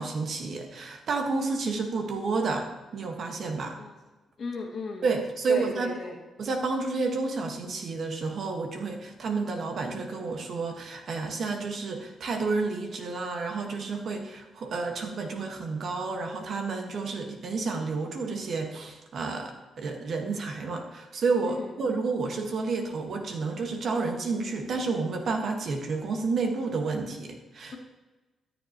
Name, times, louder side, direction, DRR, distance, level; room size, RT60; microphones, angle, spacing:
voice 1, 0.0-2.7 2.9-3.7 5.0-5.9 6.4-27.8, right 4 dB, 65° right, 3 dB, 1.4 m, -30 dB
voice 2, 4.4-5.1 5.5-6.2 21.5-21.8, left 4 dB, 55° left, 0 dB, 1.8 m, -36 dB
13.0 x 7.3 x 2.9 m, 1.2 s
supercardioid pair, 60°, 0 cm